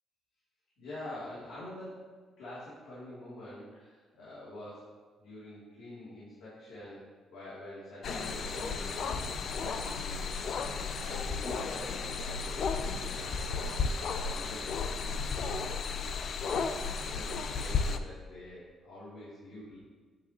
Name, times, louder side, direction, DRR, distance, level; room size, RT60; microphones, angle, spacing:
voice 1, 0.8-2.0 2.4-4.9 5.2-7.0 7.3-10.3 10.7-13.8 14.2-15.9 16.2-19.8, left 1 dB, 85° left, -10 dB, 2.9 m, -46 dB
sound 1, 8.0-18.0, left 5 dB, 60° left, 0.6 m, -34 dB
9.4 x 8.8 x 3.0 m, 1.4 s
cardioid pair, 90°, 0 cm